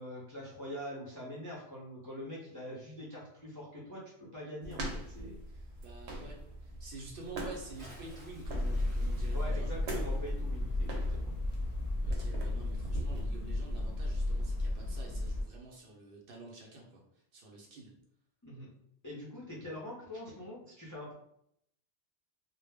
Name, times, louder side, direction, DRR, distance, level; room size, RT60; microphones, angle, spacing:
voice 1, 0.0-5.4 9.3-11.3 18.4-18.7 19.0-21.1, left 1 dB, 25° left, -6 dB, 0.4 m, -44 dB
sound 1, 4.6-13.2, right 1 dB, 90° right, 0.9 m, -42 dB
voice 2, 5.8-9.8 12.0-17.0 17.3-17.9, right 3 dB, 60° right, -1 dB, 0.7 m, -49 dB
Bathtub (filling or washing) / Splash splatter, 7.5-12.4 12.7-12.8, right 1 dB, 30° right, 0.8 m, -58 dB
sound 2, 8.4-15.4, left 1 dB, 65° left, 0.7 m, -34 dB
2.1 x 2.0 x 3.3 m, 0.73 s
omnidirectional pair, 1.1 m